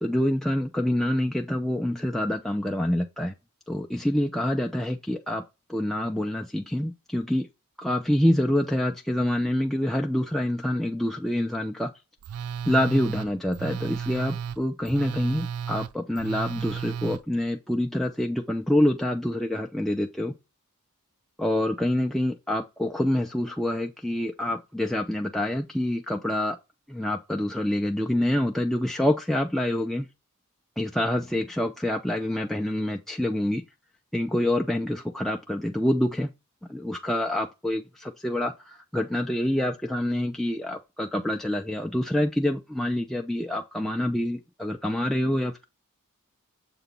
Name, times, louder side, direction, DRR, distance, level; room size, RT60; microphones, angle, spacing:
voice 1, 0.0-3.3 3.7-5.4 5.7-7.5 7.8-11.9 12.7-20.3 21.4-26.6 26.9-30.1 30.8-33.6 34.1-36.3 36.7-45.6, left 1 dB, ahead, 0.4 m, -26 dB
Telephone, 12.2-17.2, right 7 dB, 75° right, 0.3 m, -34 dB
7.0 x 2.7 x 5.2 m
head